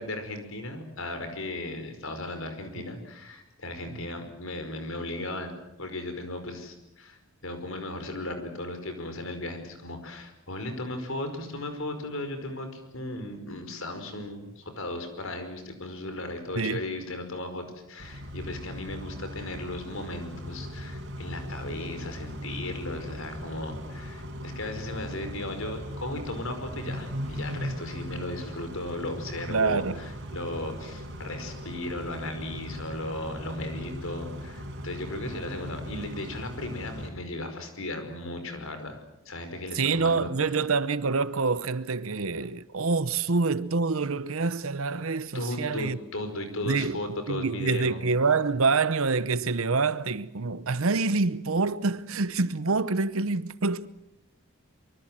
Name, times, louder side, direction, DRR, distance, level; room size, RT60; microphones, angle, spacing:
voice 1, 0.0-7.2 7.4-39.0 39.3-40.5 45.3-48.0, left 1 dB, 65° left, 5.1 m, -36 dB
Car / Idling / Accelerating revving vroom, 18.0-37.1, equal, 55° right, 4.9 m, -39 dB
voice 2, 29.5-30.0 39.7-46.0 46.6-47.0 47.3-53.9, right 4 dB, 70° right, 0.8 m, -26 dB
25.0 x 24.0 x 7.6 m
head